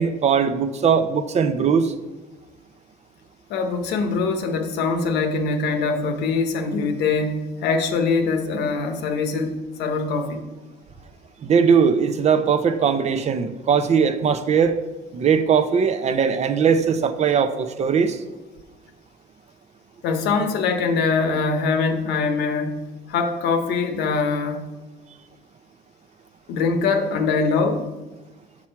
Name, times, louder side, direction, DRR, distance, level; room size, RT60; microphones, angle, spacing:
voice 1, 0.0-1.9 11.4-14.8 15.1-18.2, right 6 dB, 40° right, 10 dB, 0.5 m, -20 dB
voice 2, 3.5-10.4 20.0-24.7 26.5-27.9, left 4 dB, 85° left, 6 dB, 0.9 m, -23 dB
6.0 x 5.9 x 4.4 m, 1.1 s
cardioid pair, 110°, 17 cm